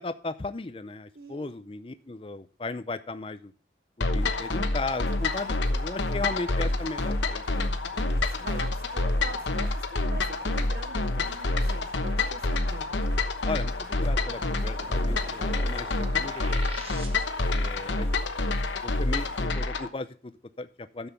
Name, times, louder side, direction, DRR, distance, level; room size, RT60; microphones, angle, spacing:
voice 1, 0.0-3.5 4.0-7.7 13.5-16.7 17.4-18.2 18.8-21.1, left 3 dB, 30° left, 11 dB, 0.5 m, -36 dB
voice 2, 1.1-1.5 8.0-12.9, right 2 dB, 55° right, 9 dB, 0.9 m, -43 dB
sound 1, 4.0-19.9, left 2 dB, 80° left, 1.1 m, -27 dB
sound 2, 4.1-19.5, right 1 dB, 70° right, 7.3 m, -54 dB
sound 3, 14.1-17.6, right 2 dB, 30° right, 1.2 m, -44 dB
10.5 x 7.1 x 5.6 m, 0.40 s
head